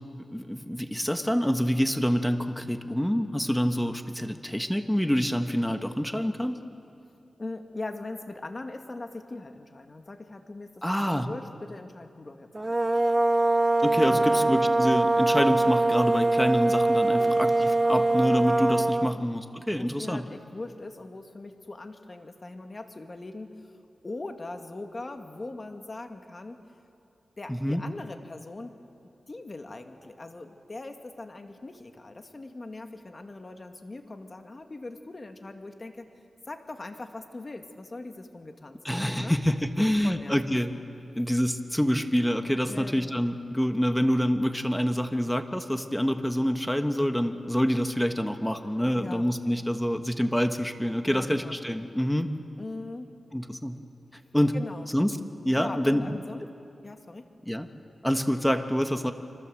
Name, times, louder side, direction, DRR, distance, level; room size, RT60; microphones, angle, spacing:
voice 1, 0.3-6.6 10.8-11.3 13.8-20.2 27.5-27.8 38.8-40.7 41.1-52.3 53.3-53.8 54.3-54.6 54.9-55.2 55.4-56.2 57.5-57.7 58.0-59.1, equal, 5° left, 7 dB, 1.6 m, -26 dB
voice 2, 7.1-13.0 14.1-14.6 17.2-17.6 19.1-19.3 19.8-23.8 24.0-26.6 27.4-28.8 29.3-36.1 36.5-39.4 39.8-40.4 42.7-43.2 49.0-49.3 51.0-51.6 52.6-53.1 54.5-54.9 55.5-56.4 56.8-57.3, left 2 dB, 40° left, 5 dB, 2.0 m, -41 dB
sound 1, 12.5-19.2, right 2 dB, 25° right, 0.6 m, -23 dB
29.0 x 25.5 x 7.8 m, 2.7 s
cardioid pair, 65°, 0 cm